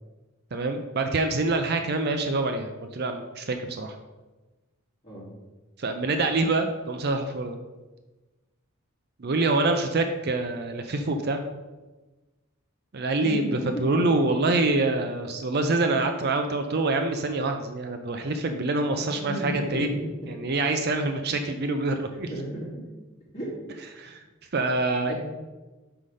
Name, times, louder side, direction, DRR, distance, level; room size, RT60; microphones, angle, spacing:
voice 1, 0.5-4.0 5.8-7.6 9.2-11.4 12.9-20.0 20.3-22.3 24.0-24.2 24.5-25.1, right 2 dB, 50° right, 6 dB, 0.5 m, -26 dB
voice 2, 13.2-14.4 19.0-20.1 22.1-22.8 23.3-23.5 25.1-25.2, equal, 30° left, -9 dB, 1.9 m, -34 dB
5.7 x 5.3 x 4.9 m, 1.2 s
head